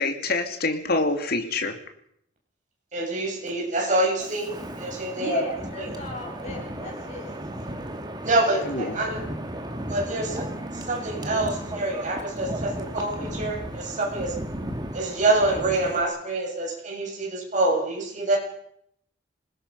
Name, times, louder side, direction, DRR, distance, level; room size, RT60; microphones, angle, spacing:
voice 1, 0.0-1.8 8.6-9.0, left 3 dB, 55° left, 6 dB, 2.8 m, -26 dB
voice 2, 2.9-5.4 5.8-5.9 8.2-9.2 9.9-10.4 10.9-14.4 14.9-18.4, right 2 dB, 40° right, 0 dB, 7.1 m, -26 dB
Wind, 4.2-16.0, right 1 dB, 25° right, 2.3 m, -35 dB
voice 3, 5.2-7.3, left 1 dB, 40° left, 1 dB, 7.1 m, -33 dB
28.0 x 19.5 x 5.7 m, 0.71 s
head